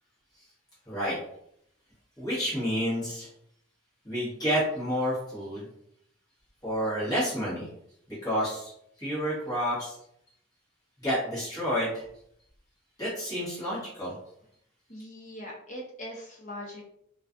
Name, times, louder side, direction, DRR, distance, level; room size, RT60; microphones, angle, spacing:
voice 1, 0.9-1.2 2.2-3.3 4.0-5.6 6.6-7.7 8.2-8.7 9.0-10.0 11.0-12.0 13.0-14.1, equal, 20° left, -9 dB, 1.0 m, -29 dB
voice 2, 14.9-16.8, equal, 35° left, -4 dB, 0.7 m, -41 dB
2.4 x 2.3 x 2.4 m, 0.73 s
head